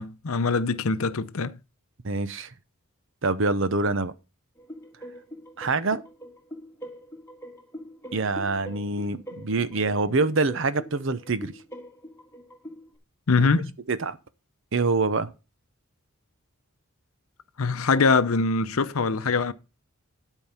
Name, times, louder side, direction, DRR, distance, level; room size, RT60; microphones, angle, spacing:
voice 1, 0.0-1.6 13.3-13.8 17.6-19.5, left 4 dB, 70° left, 0.7 m, -23 dB
voice 2, 2.0-2.5 3.2-4.1 5.6-6.0 8.1-11.6 13.4-13.5 13.9-14.2 14.7-15.3, right 3 dB, 60° right, 0.7 m, -25 dB
sound 1, 4.6-13.0, equal, 10° left, 1.7 m, -43 dB
12.0 x 4.6 x 5.7 m
head